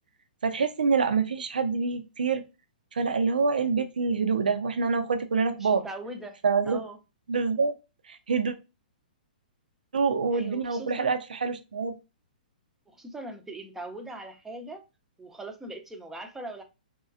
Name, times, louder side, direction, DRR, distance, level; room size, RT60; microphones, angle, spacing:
voice 1, 0.4-2.4 2.9-5.8 6.4-6.8 7.3-7.7 8.1-8.5 9.9-11.9, right 5 dB, 75° right, 0.5 m, -26 dB
voice 2, 5.6-6.4 6.7-7.0 10.3-11.1 12.9-14.8 15.2-16.6, right 1 dB, 5° right, 0.6 m, -40 dB
4.2 x 2.3 x 2.5 m
figure-of-eight pair, 120°, 5 cm